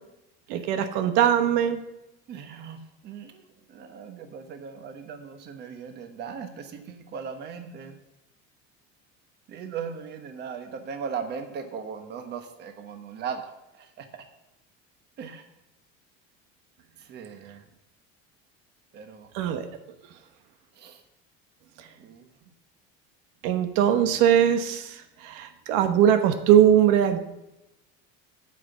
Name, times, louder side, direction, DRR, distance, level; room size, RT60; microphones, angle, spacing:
voice 1, 0.5-1.8 19.3-19.7 23.4-24.9 25.2-27.2, right 10 dB, 80° right, 8 dB, 1.1 m, -20 dB
voice 2, 2.3-3.4 3.7-8.0 9.5-14.1 15.2-15.4 17.1-17.6 18.9-19.3 20.8-21.0 22.0-22.3, right 6 dB, 35° right, 6 dB, 1.2 m, -38 dB
9.1 x 5.9 x 8.2 m, 0.92 s
cardioid pair, 170°, 29 cm